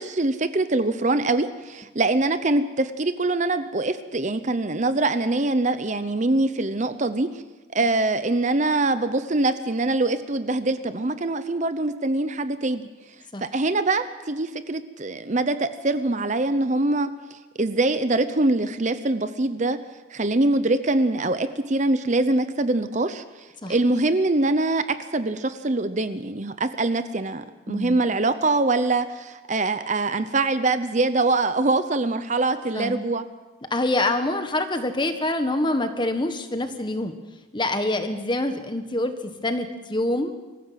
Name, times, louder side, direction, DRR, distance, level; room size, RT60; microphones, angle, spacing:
voice 1, 0.0-7.4 7.7-12.8 13.4-19.8 20.1-33.3, right 2 dB, 35° right, 11 dB, 0.7 m, -24 dB
voice 2, 27.7-28.0 32.7-33.0 33.7-37.1 37.5-40.3, left 2 dB, 20° left, 8 dB, 1.4 m, -26 dB
24.0 x 15.5 x 7.6 m, 1.2 s
head